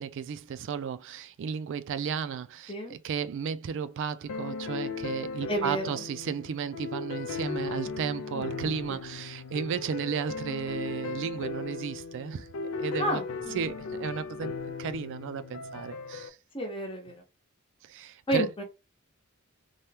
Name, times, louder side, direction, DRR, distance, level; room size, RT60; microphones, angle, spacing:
voice 1, 0.0-12.5 12.8-13.2 13.5-14.5 14.8-16.4 17.8-18.5, right 7 dB, 60° right, 0.3 m, -34 dB
sound 1, 4.3-16.3, left 4 dB, 85° left, 0.4 m, -37 dB
voice 2, 5.5-6.0 8.3-8.5 8.9-9.0 13.0-13.2 16.5-17.1 18.3-18.6, equal, 25° left, 0.8 m, -30 dB
2.8 x 2.2 x 3.3 m
head